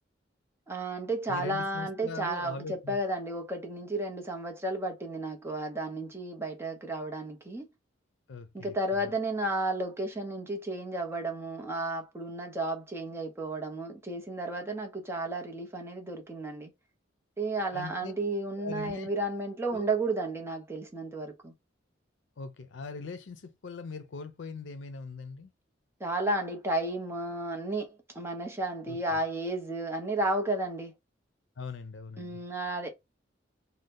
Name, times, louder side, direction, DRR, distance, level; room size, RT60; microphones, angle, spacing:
voice 1, 0.7-7.7 8.5-16.7 17.4-21.5 26.0-30.9 32.2-32.9, right 2 dB, 15° right, 0.7 m, -33 dB
voice 2, 1.3-3.0 8.3-9.0 17.7-18.1 18.6-19.1 19.7-19.9 22.4-25.5 28.9-29.0 31.6-32.4, left 4 dB, 80° left, 0.5 m, -41 dB
2.7 x 2.1 x 3.4 m
head